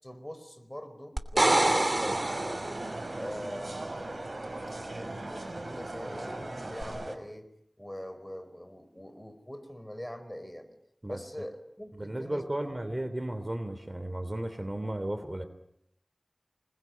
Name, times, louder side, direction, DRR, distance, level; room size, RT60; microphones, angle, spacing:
voice 1, 0.0-2.8 3.1-4.0 4.9-7.5 7.8-10.8 11.1-12.8, equal, 15° left, 9 dB, 4.6 m, -43 dB
sound 1, 1.2-3.1 6.8-6.9, right 2 dB, 45° right, 2.9 m, -26 dB
sound 2, 2.1-7.2, right 2 dB, 65° right, 5.5 m, -38 dB
voice 2, 12.0-15.5, right 1 dB, 30° right, 10 dB, 2.9 m, -34 dB
28.0 x 21.0 x 9.3 m, 0.78 s
wide cardioid pair, 55°, 0 cm